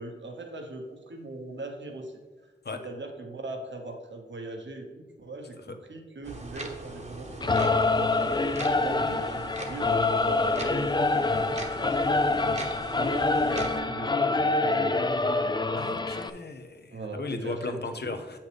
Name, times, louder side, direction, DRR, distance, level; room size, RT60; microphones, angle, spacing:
voice 1, 0.0-2.5 2.8-7.9 8.2-12.1 12.9-15.1 16.9-17.8 18.1-18.2, right 2 dB, 75° right, 3 dB, 1.1 m, -40 dB
sound 1, 6.2-13.8, right 2 dB, 35° right, 1.1 m, -40 dB
Singing / Musical instrument, 7.4-16.3, left 3 dB, 25° left, 0.4 m, -26 dB
voice 2, 15.8-18.4, left 3 dB, 60° left, 7 dB, 0.8 m, -36 dB
8.0 x 5.8 x 3.4 m, 1.3 s
cardioid pair, 50°, 19 cm